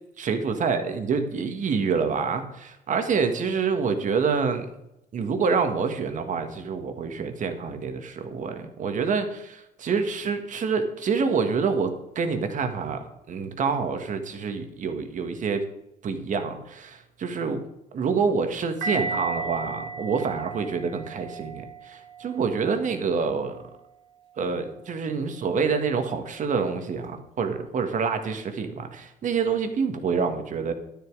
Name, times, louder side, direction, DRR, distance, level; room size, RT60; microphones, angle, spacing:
voice 1, 0.2-4.7 5.1-15.6 16.0-17.7 17.9-23.6 24.4-30.7, right 5 dB, 50° right, 7 dB, 1.8 m, -27 dB
sound 1, 18.8-23.7 24.4-24.6, right 4 dB, 80° right, 4.6 m, -35 dB
12.0 x 10.5 x 4.9 m, 0.85 s
cardioid pair, 110°, 17 cm